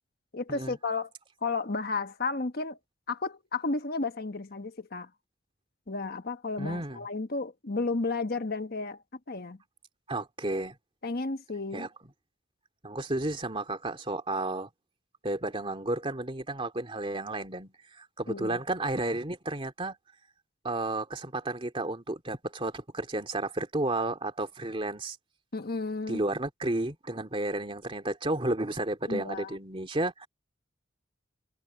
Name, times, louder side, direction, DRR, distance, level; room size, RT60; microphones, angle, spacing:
voice 1, 0.3-1.1 1.4-2.8 3.1-5.1 5.9-9.0 9.3-9.6 11.0-11.9 18.3-18.6 25.5-26.2 29.1-29.6, left 3 dB, 55° left, 1.3 m, -32 dB
voice 2, 6.6-7.0 10.1-10.7 11.7-11.9 12.8-14.7 15.2-20.0 20.6-25.2 26.1-30.3, right 2 dB, 30° right, 2.5 m, -32 dB
head